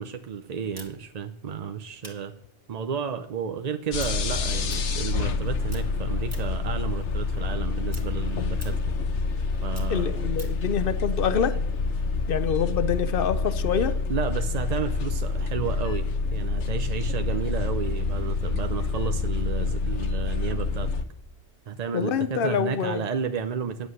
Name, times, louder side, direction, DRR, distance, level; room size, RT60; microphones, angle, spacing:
voice 1, 0.0-2.3 2.7-9.0 9.6-10.4 14.1-20.9 21.7-23.9, right 6 dB, 45° right, 7 dB, 0.5 m, -32 dB
sound 1, 0.7-5.4 5.7-6.7 7.1-10.7, right 1 dB, 15° right, 1.6 m, -48 dB
sound 2, 3.9-21.1, left 4 dB, 75° left, 1.1 m, -27 dB
voice 2, 9.9-11.5 12.3-13.9 21.9-23.0, left 7 dB, 55° left, 13 dB, 0.8 m, -26 dB
9.5 x 8.2 x 6.5 m, 0.74 s
omnidirectional pair, 1.2 m